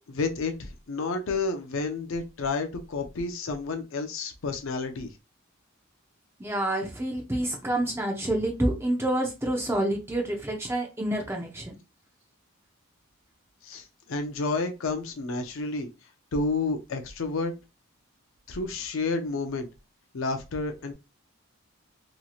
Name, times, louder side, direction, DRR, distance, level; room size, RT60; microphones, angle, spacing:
voice 1, 0.1-5.1 13.6-15.9 16.3-17.5 18.5-19.7 20.1-20.9, left 3 dB, 65° left, 0.5 m, -30 dB
voice 2, 6.4-11.7, right 1 dB, 10° right, 0.6 m, -28 dB
3.0 x 2.7 x 2.3 m
head